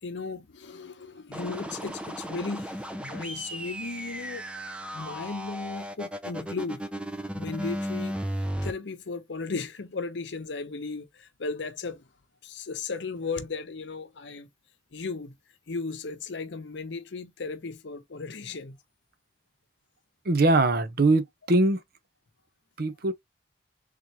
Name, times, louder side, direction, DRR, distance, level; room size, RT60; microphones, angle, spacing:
voice 1, 0.0-4.5 4.9-12.1 12.4-14.5 14.9-15.4 15.7-18.8, left 4 dB, 65° left, 0.7 m, -36 dB
sound 1, 1.3-8.7, equal, 5° right, 0.5 m, -35 dB
voice 2, 20.2-21.8 22.8-23.1, right 2 dB, 55° right, 0.7 m, -22 dB
3.7 x 3.1 x 2.8 m
head